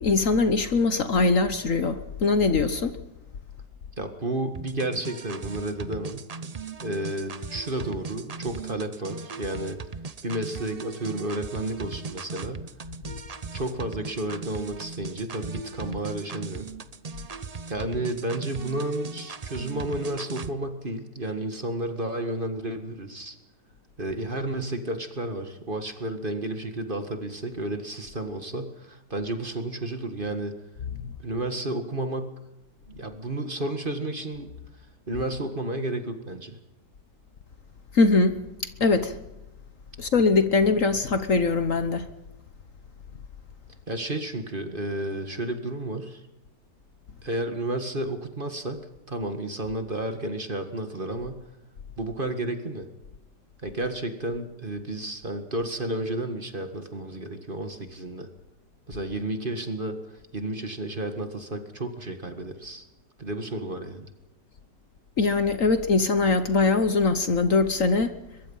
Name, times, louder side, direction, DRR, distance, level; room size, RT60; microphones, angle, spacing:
voice 1, 0.0-3.0 37.9-38.4 38.8-39.2 40.0-42.1 65.2-68.1, left 3 dB, 50° left, 10 dB, 1.4 m, -22 dB
voice 2, 4.0-6.2 6.8-9.8 10.2-12.7 13.5-16.7 17.7-23.4 24.0-30.5 31.2-32.3 32.9-34.5 35.1-36.6 43.9-46.2 47.2-48.8 49.1-51.4 52.0-52.9 53.6-58.3 58.9-62.9 63.2-64.1, right 1 dB, 30° right, 7 dB, 1.9 m, -32 dB
sound 1, 4.5-20.5, right 4 dB, 45° right, 0.4 m, -38 dB
22.5 x 22.5 x 5.6 m, 0.98 s
omnidirectional pair, 1.9 m